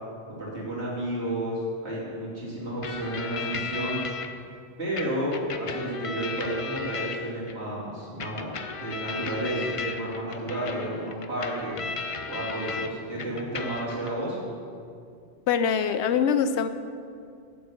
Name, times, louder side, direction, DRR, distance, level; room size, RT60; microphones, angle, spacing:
voice 1, 0.3-4.0 4.8-11.9 12.3-14.4, right 1 dB, 70° right, -7 dB, 2.9 m, -31 dB
sound 1, 2.8-4.3 5.0-7.5 8.2-12.9 13.2-14.1, left 5 dB, 50° left, 0.4 m, -35 dB
voice 2, 15.5-16.7, left 7 dB, 75° left, 10 dB, 0.8 m, -23 dB
8.0 x 7.5 x 6.7 m, 2.4 s
omnidirectional pair, 1.2 m